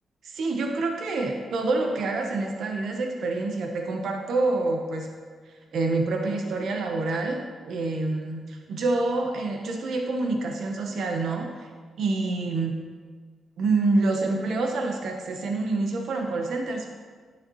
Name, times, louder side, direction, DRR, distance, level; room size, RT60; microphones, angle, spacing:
voice 1, 0.2-5.1 5.7-11.7 12.0-12.7 13.6-17.0, right 3 dB, 70° right, 2 dB, 1.0 m, -27 dB
11.5 x 7.3 x 3.1 m, 1.5 s
wide cardioid pair, 150°, 0 cm